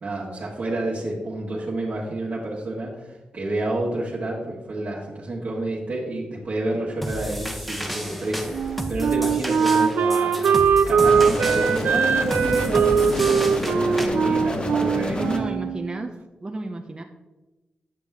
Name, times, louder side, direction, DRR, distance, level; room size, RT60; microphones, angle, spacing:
voice 1, 0.0-10.6 10.9-15.4, right 1 dB, 60° right, -5 dB, 1.5 m, -29 dB
sound 1, 7.0-14.1, equal, ahead, 0.9 m, -33 dB
Wind instrument woodwind instrument, 8.5-16.0, right 6 dB, 80° right, 0.5 m, -21 dB
sound 2, 11.0-15.4, left 2 dB, 35° left, 1.1 m, -29 dB
voice 2, 15.0-16.1 16.4-17.0, right 2 dB, 30° right, 4 dB, 0.6 m, -31 dB
9.1 x 6.1 x 3.5 m, 1.1 s
cardioid pair, 75°, 3 cm